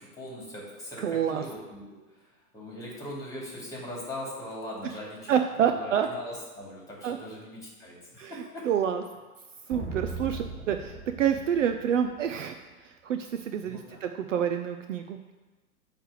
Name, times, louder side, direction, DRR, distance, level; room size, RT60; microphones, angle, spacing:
voice 1, 0.0-8.7 13.5-14.0, left 1 dB, 10° left, -4 dB, 2.6 m, -41 dB
voice 2, 1.0-1.4 5.3-6.1 7.0-7.2 8.2-8.3 8.6-9.0 9.7-12.6 13.0-15.3, right 8 dB, 55° right, 7 dB, 0.5 m, -27 dB
sound 1, 9.7-12.4, right 3 dB, 20° right, 1.0 m, -38 dB
8.7 x 3.4 x 6.6 m, 1.3 s
figure-of-eight pair, 110°, 46 cm